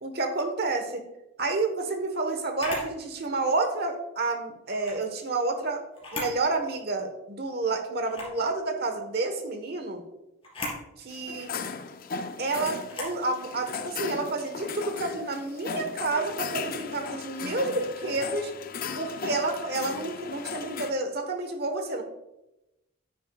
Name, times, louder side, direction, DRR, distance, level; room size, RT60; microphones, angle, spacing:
voice 1, 0.0-1.0 1.4-5.8 6.1-10.0 11.0-11.5 12.4-18.5 18.9-22.0, right 3 dB, 50° right, 6 dB, 1.2 m, -29 dB
Camera, 2.6-2.9 4.6-5.0 5.9-6.4 6.8-6.9 8.0-8.4 10.4-10.8 12.9-13.2, left 2 dB, 25° left, 3.3 m, -36 dB
sound 1, 11.1-20.9, left 5 dB, 45° left, 0.4 m, -37 dB
10.0 x 9.7 x 2.4 m, 0.93 s
head